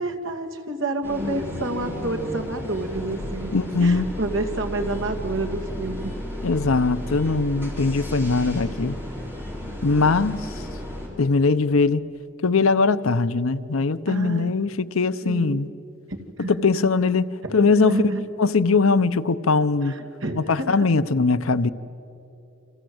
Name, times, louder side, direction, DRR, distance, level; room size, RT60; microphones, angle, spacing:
voice 1, 0.0-6.2 14.1-14.5 15.2-15.6 16.1-16.7 17.4-18.2 19.8-20.8, right 2 dB, 70° right, 2.3 m, -29 dB
sound 1, 1.0-11.1, left 1 dB, 10° right, 4.8 m, -33 dB
voice 2, 3.5-4.1 6.4-9.0 9.8-10.5 11.2-12.0 12.4-15.7 16.5-18.1 18.4-19.9 20.4-21.7, left 4 dB, 85° left, 0.8 m, -21 dB
29.0 x 25.5 x 7.9 m
head